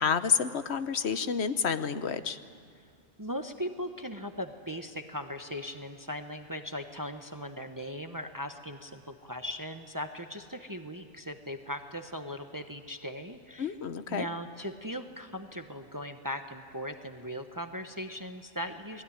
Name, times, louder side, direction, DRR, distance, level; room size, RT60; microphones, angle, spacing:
voice 1, 0.0-2.4 13.6-14.3, left 6 dB, 70° left, 11 dB, 1.2 m, -29 dB
voice 2, 3.2-13.8 14.1-19.0, equal, 20° right, 6 dB, 1.0 m, -39 dB
29.0 x 20.5 x 10.0 m, 2.4 s
omnidirectional pair, 1.1 m